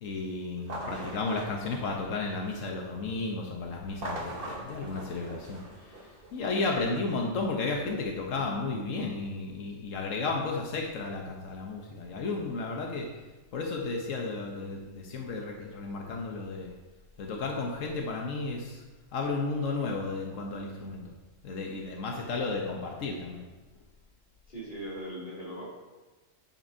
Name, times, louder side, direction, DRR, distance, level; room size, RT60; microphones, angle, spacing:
voice 1, 0.0-13.1 13.5-16.7 17.2-18.8 19.1-21.1 21.4-23.4, left 3 dB, 90° left, 0 dB, 1.3 m, -33 dB
sound 1, 0.6-2.8 3.8-6.4, right 1 dB, 50° right, 1.4 m, -42 dB
voice 2, 24.5-25.6, right 1 dB, 40° left, -7 dB, 3.0 m, -39 dB
9.1 x 8.6 x 2.7 m, 1.2 s
omnidirectional pair, 1.3 m